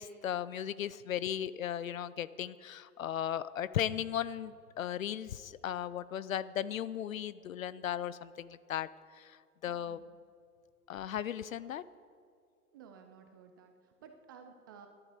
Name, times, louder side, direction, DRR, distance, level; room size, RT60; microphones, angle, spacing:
voice 1, 0.0-8.9 9.2-9.4 9.6-10.0 10.9-11.8, left 10 dB, 60° left, 17 dB, 0.6 m, -36 dB
voice 2, 9.7-10.1 12.7-14.9, right 6 dB, 15° right, 5 dB, 0.4 m, -55 dB
19.0 x 11.5 x 4.5 m, 2.2 s
figure-of-eight pair, 110°, 46 cm